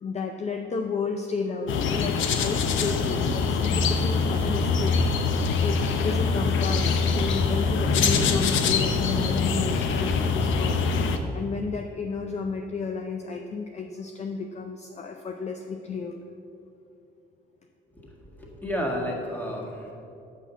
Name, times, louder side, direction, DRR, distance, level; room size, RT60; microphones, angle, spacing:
voice 1, 0.0-5.0 5.6-16.2, left 4 dB, 35° left, 4 dB, 0.5 m, -32 dB
sound 1, 1.7-11.2, left 4 dB, 80° left, 0.7 m, -24 dB
voice 2, 18.0-19.9, equal, 10° left, -2 dB, 1.9 m, -32 dB
6.2 x 5.7 x 7.0 m, 2.7 s
cardioid pair, 90°, 20 cm